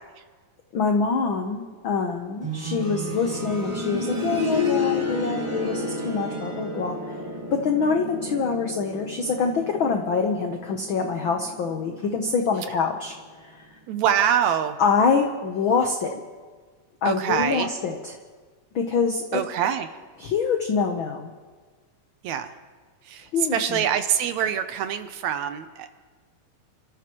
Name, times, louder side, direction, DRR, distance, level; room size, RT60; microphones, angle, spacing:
voice 1, 0.7-7.2 7.5-13.1 13.4-13.6 14.8-16.2 17.0-18.0 18.7-19.4 20.2-21.3 23.3-23.6, left 5 dB, 85° left, 3 dB, 1.1 m, -25 dB
sound 1, 2.4-13.2 13.5-13.6 14.5-14.6, left 2 dB, 20° right, 0.8 m, -31 dB
voice 2, 13.9-14.8 17.1-17.7 19.3-20.0 22.2-22.5 23.0-25.9, right 9 dB, 75° right, 9 dB, 1.9 m, -25 dB
29.5 x 14.0 x 3.0 m, 1.5 s
omnidirectional pair, 3.6 m